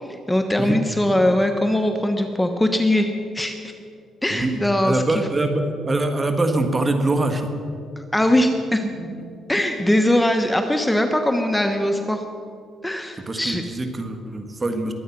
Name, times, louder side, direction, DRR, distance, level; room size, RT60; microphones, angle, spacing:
voice 1, 0.0-3.6 4.2-5.3 8.1-8.8 9.5-12.2 12.8-13.6, left 1 dB, 10° left, 5 dB, 1.0 m, -21 dB
voice 2, 4.8-7.5 8.8-9.2 13.3-14.9, right 2 dB, 25° right, 6 dB, 1.8 m, -23 dB
22.5 x 8.9 x 6.0 m, 2.4 s
cardioid pair, 90°, 0 cm